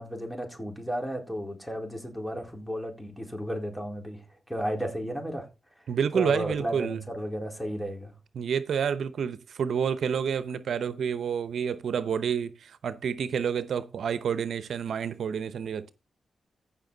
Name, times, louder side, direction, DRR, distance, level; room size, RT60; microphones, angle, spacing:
voice 1, 0.0-5.5 6.1-8.1, equal, 5° left, 4.1 m, -33 dB
voice 2, 5.9-7.0 8.3-15.9, right 7 dB, 75° right, 0.8 m, -29 dB
15.5 x 5.9 x 3.9 m
cardioid pair, 75°, 0 cm